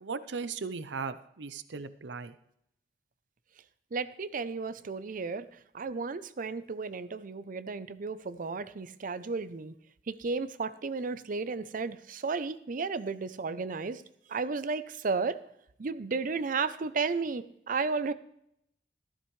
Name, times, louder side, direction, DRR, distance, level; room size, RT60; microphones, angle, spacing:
voice 1, 0.0-2.3, right 5 dB, 90° right, 13 dB, 0.6 m, -37 dB
voice 2, 3.9-9.7 10.1-14.0 14.3-15.4 15.8-18.1, right 4 dB, 50° right, 14 dB, 0.5 m, -33 dB
14.0 x 12.5 x 3.2 m, 0.74 s
head